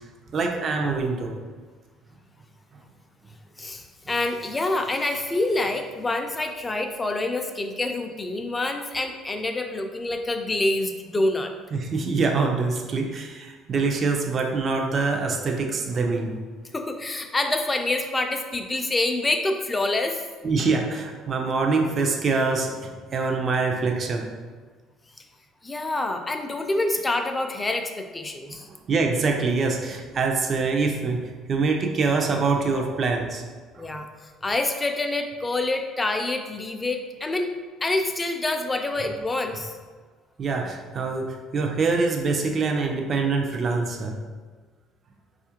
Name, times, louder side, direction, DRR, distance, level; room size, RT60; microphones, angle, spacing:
voice 1, 0.3-1.3 11.7-16.4 20.4-24.3 28.9-33.4 33.7-33.9 40.4-44.2, right 4 dB, 45° right, 3 dB, 0.5 m, -25 dB
voice 2, 3.6-11.5 16.7-20.2 25.6-28.7 33.8-37.5 37.8-39.8, left 2 dB, 20° left, 5 dB, 0.4 m, -27 dB
4.1 x 2.4 x 2.8 m, 1.4 s
supercardioid pair, 85°, 0 cm